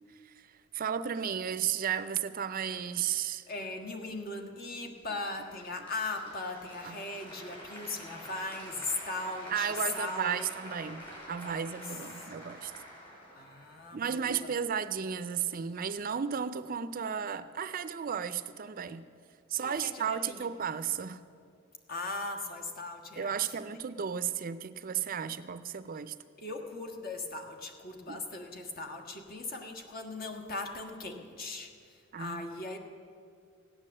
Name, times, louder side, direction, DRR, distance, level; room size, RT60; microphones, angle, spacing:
voice 1, 0.1-3.5 6.8-7.0 9.5-12.7 13.9-19.1 19.5-21.2 23.2-26.2 28.1-28.2 32.1-32.4, right 7 dB, 45° right, 13 dB, 0.5 m, -34 dB
voice 2, 3.5-10.5 11.4-11.7 12.2-12.3 13.3-14.5 19.6-20.5 21.9-23.5 26.4-32.8, left 2 dB, 50° left, 4 dB, 1.6 m, -39 dB
Applause, 5.2-14.2, equal, 25° left, 4.9 m, -47 dB
16.0 x 9.7 x 7.4 m, 2.3 s
head